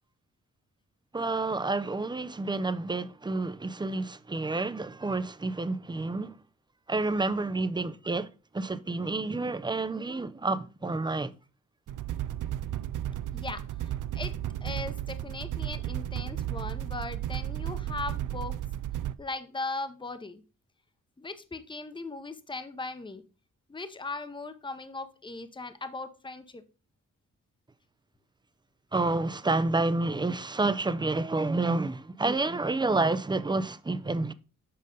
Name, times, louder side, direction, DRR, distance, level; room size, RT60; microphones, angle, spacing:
voice 1, 1.1-6.4 6.9-8.3 8.5-11.3 28.9-34.3, right 3 dB, 15° right, 0.5 m, -29 dB
sound 1, 11.9-19.2, right 12 dB, 75° right, 0.5 m, -34 dB
voice 2, 13.3-14.3 14.6-18.5 19.2-20.4 21.2-23.2 23.7-26.6, left 3 dB, 15° left, 0.8 m, -38 dB
7.6 x 5.4 x 3.7 m
wide cardioid pair, 100°, 31 cm